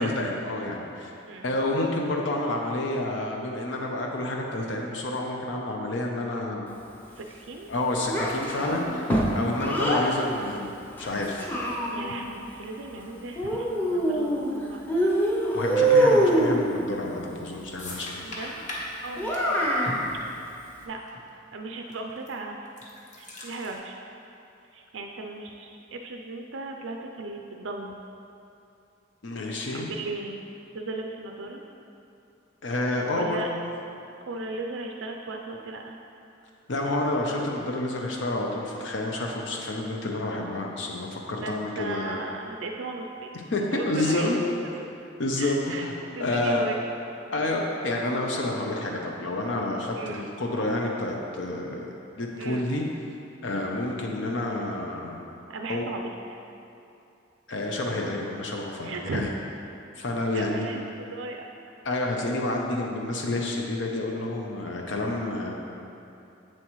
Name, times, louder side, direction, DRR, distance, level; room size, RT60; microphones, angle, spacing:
voice 1, 0.0-6.7 7.7-11.5 15.5-18.2 29.2-29.9 32.6-33.4 36.7-42.2 43.5-44.4 45.2-45.9 46.2-46.6 47.3-51.9 52.2-52.8 53.4-55.2 55.7-55.9 57.5-59.3 60.0-60.7 61.8-65.5, left 2 dB, 70° left, 0 dB, 0.7 m, -29 dB
voice 2, 7.2-7.7 11.9-14.9 18.2-18.7 19.0-20.0 20.8-21.0 21.5-22.7 23.2-24.0 24.7-28.0 29.7-30.4 30.7-31.6 32.9-33.5 34.3-36.0 41.4-43.3 43.7-44.3 44.6-44.9 45.4-46.8 50.0-50.2 52.4-52.7 55.5-56.1 58.8-59.2 60.3-61.4, right 3 dB, 80° right, 2 dB, 0.5 m, -37 dB
Child speech kid speaking, 8.1-10.1 11.0-12.2 13.4-14.5 14.9-16.6 19.2-20.0, right 1 dB, 10° left, 0.8 m, -24 dB
sound 1, 17.2-17.4 17.8-20.8 21.1-21.2 21.9-22.3 22.7-23.7, left 1 dB, 40° left, 1.2 m, -39 dB
7.7 x 7.5 x 3.1 m, 2.7 s
head